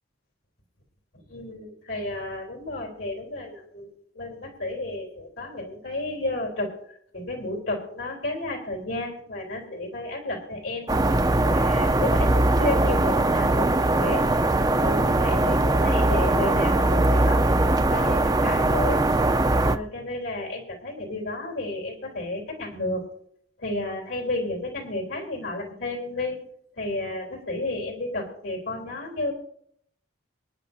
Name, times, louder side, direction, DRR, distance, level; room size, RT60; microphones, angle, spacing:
voice 1, 1.1-3.9 4.2-10.9 11.4-14.3 14.8-19.1 19.6-23.1 23.6-26.5 26.8-29.3, left 2 dB, 80° left, -1 dB, 3.4 m, -32 dB
sound 1, 10.9-19.8, right 2 dB, 20° right, 0.5 m, -21 dB
26.5 x 9.9 x 2.7 m, 0.66 s
head